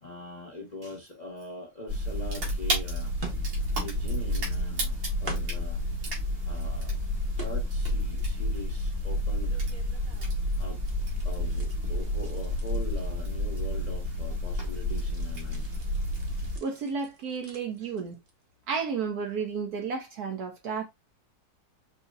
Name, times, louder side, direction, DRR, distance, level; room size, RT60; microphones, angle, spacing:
voice 1, 0.0-3.1 3.8-5.8 6.4-6.9 7.4-9.6 10.6-10.8 11.2-15.6 17.8-17.9, left 2 dB, 30° left, 0.8 m, -42 dB
sound 1, 1.9-16.6, left 1 dB, 80° right, 2.4 m, -30 dB
sound 2, 3.2-3.9 4.2-4.9 5.2-5.8 6.3-6.9 7.3-8.0 8.4-10.5 10.8-14.0 14.3-18.5 18.8-19.1 19.6-19.7, right 3 dB, 35° right, 0.9 m, -47 dB
voice 2, 16.6-18.2 18.7-20.9, right 5 dB, 65° right, 1.1 m, -32 dB
5.5 x 2.8 x 2.4 m
omnidirectional pair, 2.0 m